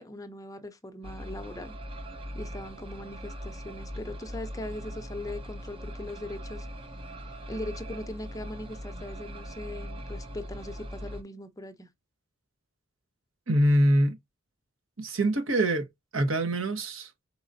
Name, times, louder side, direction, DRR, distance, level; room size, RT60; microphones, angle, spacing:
voice 1, 0.0-1.8 2.3-6.7 7.3-11.9, left 1 dB, 15° left, 0.6 m, -40 dB
sound 1, 1.0-11.2, equal, 25° right, 0.6 m, -40 dB
voice 2, 13.5-14.2 15.0-15.9 16.1-17.1, right 1 dB, 80° right, 1.3 m, -24 dB
4.8 x 4.0 x 2.7 m
head